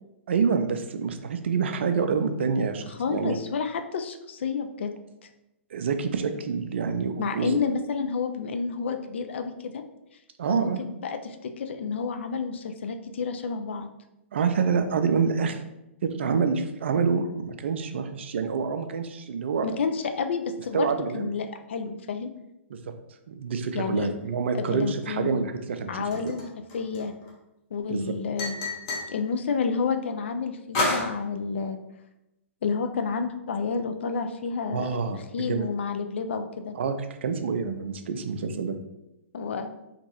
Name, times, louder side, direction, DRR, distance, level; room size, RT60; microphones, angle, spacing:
voice 1, 0.3-3.4 5.7-7.6 10.4-10.8 14.3-15.6 16.0-19.7 20.7-21.3 22.7-22.8 23.3-26.0 27.9-28.0 34.7-35.7 36.7-37.0 37.2-38.8, right 5 dB, 60° right, 8 dB, 0.4 m, -27 dB
voice 2, 2.9-4.9 5.2-5.3 7.2-9.8 10.5-13.9 19.6-20.9 21.1-22.3 23.7-24.1 24.5-25.4 25.9-26.4 26.7-27.1 27.7-28.6 29.1-31.8 32.6-35.0 35.3-36.7 39.3-39.7, left 5 dB, 60° left, 7 dB, 0.3 m, -30 dB
sound 1, 26.1-27.3 28.4-29.2 30.7-31.1, left 2 dB, 35° left, 0.8 m, -28 dB
2.9 x 2.6 x 2.8 m, 0.91 s
figure-of-eight pair, 120°, 7 cm